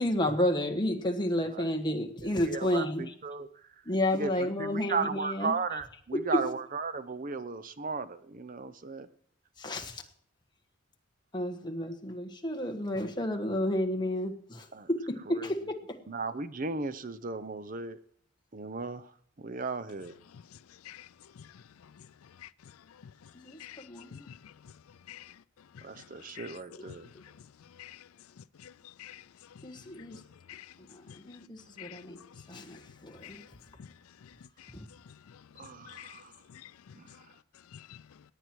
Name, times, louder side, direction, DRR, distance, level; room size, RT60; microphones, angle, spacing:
voice 1, 0.0-3.1 3.8-5.5 6.3-6.4 9.6-10.0 11.3-16.0 23.3-24.2 26.7-26.9 29.6-30.2 30.9-33.4 34.7-34.9, left 1 dB, 20° left, 1.4 m, -31 dB
voice 2, 2.5-3.5 4.1-4.3 4.6-9.1 14.7-14.9 15.4-15.5 16.1-18.0 18.5-19.1 19.4-20.1 25.8-27.1 35.6-36.3 37.0-37.1, right 4 dB, 40° right, 0.6 m, -35 dB
voice 3, 20.3-38.3, left 9 dB, 85° left, 0.4 m, -52 dB
18.0 x 9.1 x 4.6 m
head